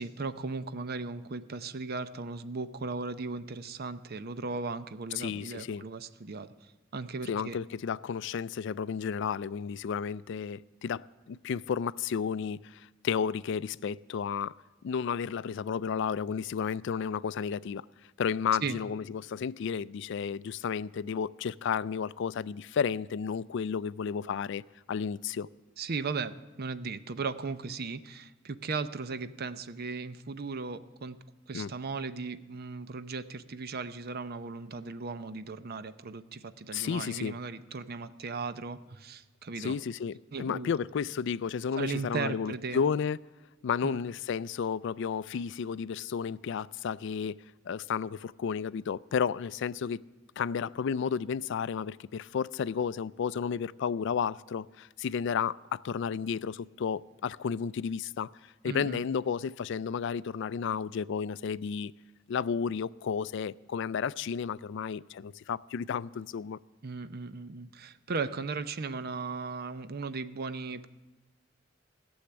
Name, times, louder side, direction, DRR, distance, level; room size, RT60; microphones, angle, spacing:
voice 1, 0.0-6.5 6.9-7.6 18.6-18.8 25.8-31.2 31.5-39.8 40.3-40.7 41.7-42.8 43.8-44.0 58.7-59.0 66.8-70.9, right 4 dB, 55° right, 0.6 m, -37 dB
voice 2, 5.2-5.8 7.3-14.5 14.8-17.8 18.2-24.6 24.9-25.5 31.5-31.7 36.7-37.4 39.6-43.2 43.6-50.0 50.4-58.3 58.6-61.9 62.3-66.6, left 6 dB, 65° left, 0.3 m, -32 dB
15.0 x 7.2 x 9.9 m
head